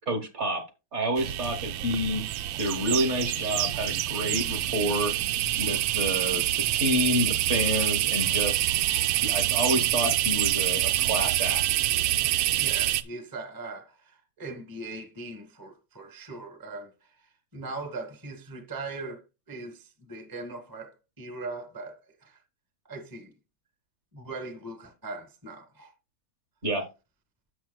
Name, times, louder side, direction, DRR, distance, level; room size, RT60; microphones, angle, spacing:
voice 1, 0.1-0.6 0.9-2.2 2.6-5.1 5.6-6.4 6.7-8.7 9.2-11.6 26.6-26.9, equal, 40° right, 1.5 m, -28 dB
sound 1, 1.2-13.0, right 14 dB, 85° right, 1.4 m, -26 dB
voice 2, 12.6-22.4 22.8-23.3 24.1-25.9, right 3 dB, 15° right, 0.9 m, -40 dB
11.5 x 7.4 x 2.2 m
omnidirectional pair, 2.1 m